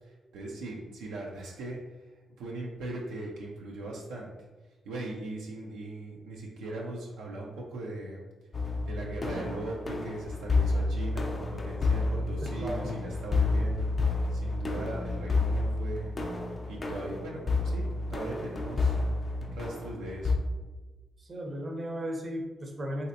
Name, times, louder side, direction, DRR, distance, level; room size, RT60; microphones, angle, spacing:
voice 1, 0.0-1.8 2.4-4.3 4.8-8.3 8.9-13.9 14.3-16.2 16.7-17.8 18.1-19.0 19.5-20.4, right 2 dB, 85° right, -2 dB, 0.4 m, -39 dB
sound 1, 8.5-20.4, left 3 dB, 40° left, 0.5 m, -30 dB
voice 2, 12.4-12.9 21.2-23.1, equal, 45° right, 1 dB, 0.6 m, -35 dB
3.2 x 2.7 x 2.6 m, 1.2 s
supercardioid pair, 55°, 0 cm